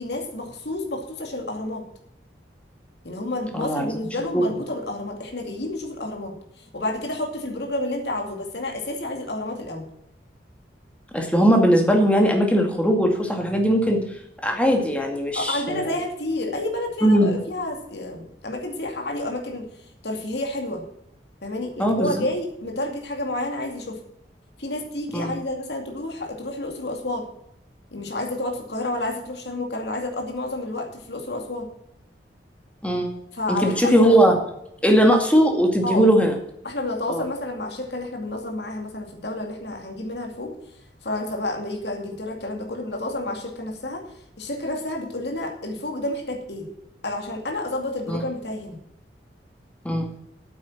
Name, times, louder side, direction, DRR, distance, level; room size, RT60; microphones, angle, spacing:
voice 1, 0.0-1.9 3.0-6.3 6.7-9.8 15.3-19.7 20.0-20.8 21.4-24.0 24.6-27.3 27.9-31.7 33.3-34.2 35.8-36.0 36.6-40.5 41.0-44.0 44.4-46.7 47.0-48.8, left 1 dB, 70° left, 2 dB, 2.4 m, -30 dB
voice 2, 3.5-3.9 4.3-4.4 11.1-14.0 14.4-16.0 17.0-17.4 21.8-22.3 25.1-25.4 32.8-33.1 33.5-34.4 34.8-36.3 37.1-37.2 48.1-48.2 49.8-50.1, equal, 5° left, 2 dB, 2.2 m, -19 dB
8.8 x 8.7 x 7.3 m, 0.76 s
head